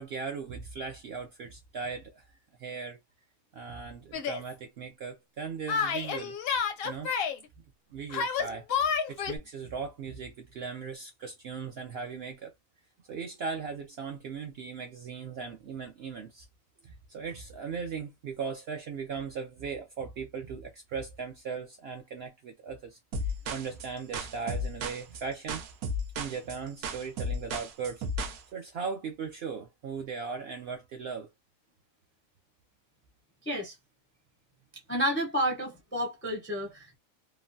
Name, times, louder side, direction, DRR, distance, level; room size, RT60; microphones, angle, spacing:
voice 1, 0.0-3.0 3.5-6.4 6.8-7.1 7.9-12.5 13.1-16.5 16.8-25.6 26.2-28.0 28.5-31.3, right 5 dB, 65° right, 0.6 m, -38 dB
Yell, 4.1-4.4 5.7-7.4 8.1-9.4, left 6 dB, 65° left, 0.6 m, -29 dB
sound 1, 23.1-28.4, equal, 85° right, 1.1 m, -34 dB
voice 2, 33.4-33.8 34.9-37.0, equal, 15° left, 0.4 m, -30 dB
3.0 x 2.1 x 2.5 m
omnidirectional pair, 1.4 m